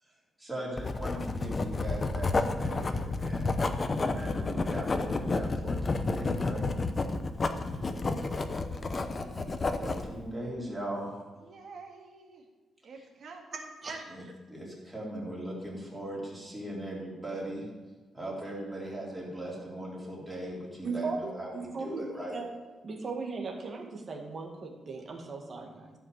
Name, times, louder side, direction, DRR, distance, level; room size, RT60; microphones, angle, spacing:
voice 1, 0.0-3.5 4.0-6.7 7.7-7.9 9.8-11.1 13.0-13.1 14.1-17.7 18.1-22.4, right 1 dB, 10° right, -5 dB, 3.7 m, -39 dB
Writing, 0.8-10.1, left 3 dB, 25° left, 0.7 m, -30 dB
voice 2, 7.5-10.0 11.4-12.5 12.8-13.7, right 3 dB, 50° right, 1 dB, 2.0 m, -50 dB
voice 3, 13.5-14.0 20.8-22.5 22.8-25.9, right 4 dB, 35° right, 1 dB, 2.0 m, -37 dB
14.5 x 5.7 x 7.6 m, 1.3 s
wide cardioid pair, 170°, 0 cm